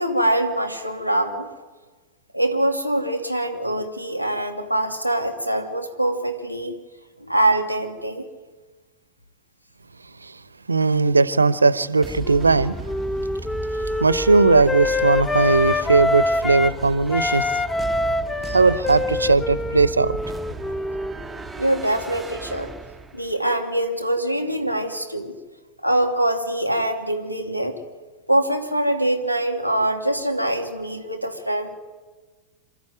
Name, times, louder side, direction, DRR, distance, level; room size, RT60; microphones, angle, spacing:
voice 1, 0.0-1.5 2.3-6.7 7.2-8.2 21.6-22.7 23.1-25.3 25.8-27.8 28.3-31.8, right 1 dB, 90° left, 5 dB, 2.6 m, -23 dB
voice 2, 10.7-12.8 13.7-17.6 18.5-20.2, right 3 dB, 80° right, 17 dB, 0.8 m, -18 dB
sound 1, 12.0-23.4, right 3 dB, 10° right, 1.0 m, -36 dB
Wind instrument woodwind instrument, 12.2-16.8 17.1-21.6, left 2 dB, 10° left, 0.8 m, -25 dB
27.0 x 13.0 x 9.2 m, 1.3 s
figure-of-eight pair, 90°, 0 cm